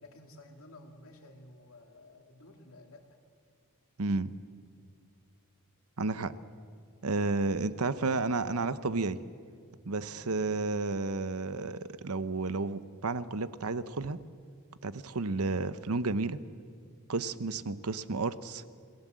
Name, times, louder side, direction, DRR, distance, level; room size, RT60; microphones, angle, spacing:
voice 1, 0.0-3.2 10.0-10.3, left 1 dB, 65° left, 4 dB, 2.5 m, -53 dB
voice 2, 4.0-4.3 6.0-6.3 7.0-9.2 9.8-14.2 14.8-16.4 17.1-18.6, right 3 dB, 80° right, 14 dB, 0.9 m, -32 dB
27.5 x 19.0 x 7.6 m, 2.2 s
head